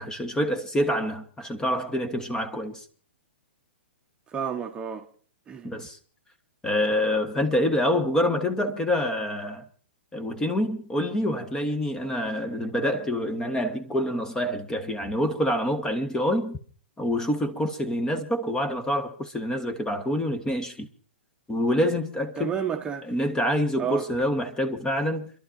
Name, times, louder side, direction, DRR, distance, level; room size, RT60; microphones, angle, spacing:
voice 1, 0.0-2.9 5.6-6.0 6.6-9.6 10.1-16.6 17.0-20.9 21.5-22.5 23.0-25.3, equal, 10° left, 1.3 m, -26 dB
voice 2, 4.3-5.0 5.5-5.7 22.4-23.1 23.8-24.1, right 7 dB, 15° right, 1.1 m, -30 dB
29.0 x 12.0 x 2.7 m
figure-of-eight pair, 115°, 6 cm